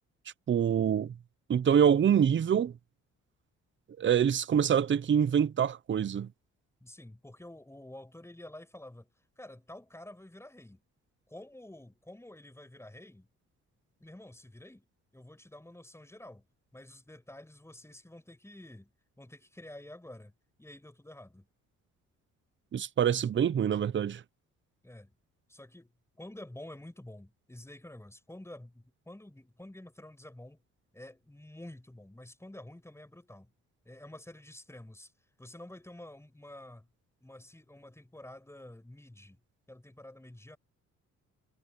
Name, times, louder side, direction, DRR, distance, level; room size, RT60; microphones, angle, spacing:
voice 1, 0.5-1.1 1.5-2.7 4.0-6.3 22.7-24.2, right 8 dB, 40° right, 0.8 m, -25 dB
voice 2, 6.8-9.1 9.4-10.8 11.3-13.3 14.0-14.9 15.1-16.4 16.7-18.9 19.2-20.3 20.6-21.5 24.8-25.1 25.5-30.6 30.9-33.5 33.8-35.1 35.4-36.9 37.2-39.4 39.7-40.6, left 1 dB, 10° left, 7.9 m, -49 dB
cardioid pair, 90°, 30 cm